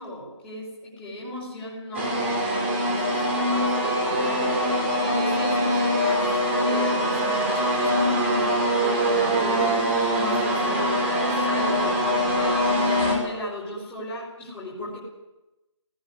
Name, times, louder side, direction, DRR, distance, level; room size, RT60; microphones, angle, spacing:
voice 1, 0.0-4.6 5.0-6.3 6.6-9.8 10.1-15.0, left 1 dB, 5° left, -6 dB, 4.9 m, -36 dB
sound 1, 1.9-13.1, equal, 25° right, 5.3 m, -23 dB
18.5 x 18.0 x 9.8 m, 1.0 s
figure-of-eight pair, 170°, 16 cm